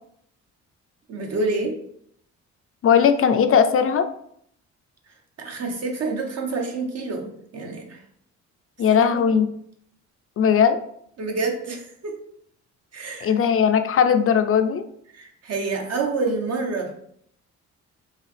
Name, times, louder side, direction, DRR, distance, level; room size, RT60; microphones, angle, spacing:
voice 1, 1.1-1.8 5.4-8.0 8.9-9.4 11.2-12.2 12.9-13.3 15.1-17.0, right 3 dB, 55° right, 2 dB, 1.0 m, -28 dB
voice 2, 2.8-4.1 8.8-9.5 10.4-10.8 13.2-14.9, left 7 dB, 50° left, 8 dB, 0.4 m, -18 dB
4.6 x 2.9 x 3.3 m, 0.69 s
cardioid pair, 90°, 30 cm